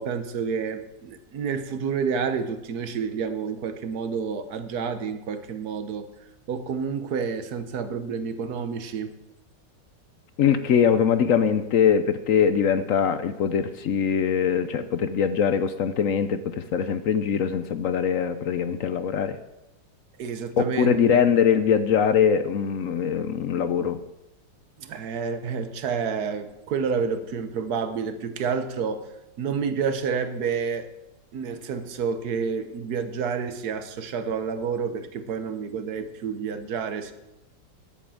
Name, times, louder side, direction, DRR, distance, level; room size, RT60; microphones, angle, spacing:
voice 1, 0.0-6.1 6.5-9.2 20.2-21.2 24.8-29.1 29.4-30.9 31.3-37.1, right 6 dB, 65° right, 9 dB, 1.4 m, -29 dB
voice 2, 10.4-19.4 20.6-24.0, left 7 dB, 65° left, 11 dB, 0.8 m, -22 dB
11.0 x 7.5 x 7.1 m, 0.94 s
omnidirectional pair, 1.9 m